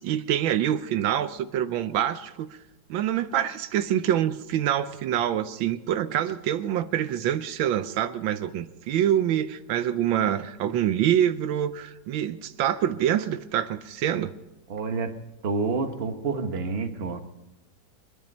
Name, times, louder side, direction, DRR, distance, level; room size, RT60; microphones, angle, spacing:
voice 1, 0.0-2.5 2.9-14.3, right 10 dB, 80° right, 11 dB, 1.4 m, -26 dB
voice 2, 14.7-15.2 15.4-17.2, right 4 dB, 35° right, 6 dB, 1.3 m, -28 dB
24.5 x 10.5 x 5.3 m, 0.96 s
omnidirectional pair, 2.1 m